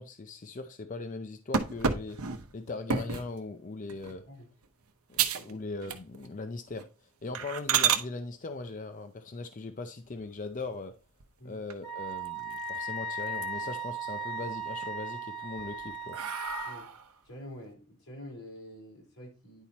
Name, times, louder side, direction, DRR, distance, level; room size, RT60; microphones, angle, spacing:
voice 1, 0.0-2.2 2.5-4.2 5.1-6.9 7.2-10.9 11.4-16.2, left 3 dB, 35° left, 0.5 m, -39 dB
sound 1, 1.5-3.3 3.9-4.2 4.6-4.7 5.1-5.5 5.8-6.3 6.7-6.8 7.3-8.0 10.1-10.7 11.2-11.3 11.7-11.8 12.1-12.9 13.2-13.8 14.2-14.9 15.4-17.1, right 7 dB, 85° right, 0.8 m, -31 dB
Wind instrument woodwind instrument, 11.8-16.8, right 2 dB, 55° left, 1.7 m, -37 dB
voice 2, 17.3-19.6, left 1 dB, 90° left, 3.8 m, -47 dB
10.0 x 4.3 x 4.1 m
head